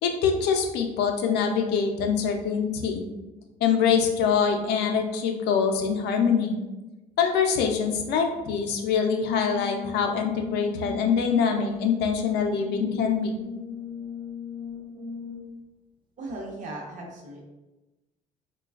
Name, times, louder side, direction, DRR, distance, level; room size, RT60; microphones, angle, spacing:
voice 1, 0.0-3.0 3.6-6.6 7.2-13.3, left 6 dB, 80° left, 4 dB, 0.4 m, -24 dB
Brass instrument, 9.2-15.6, left 6 dB, 30° right, 0.3 m, -38 dB
voice 2, 16.2-17.4, right 2 dB, 45° right, -1 dB, 0.7 m, -37 dB
3.2 x 2.2 x 2.3 m, 1.1 s
cardioid pair, 110°, 17 cm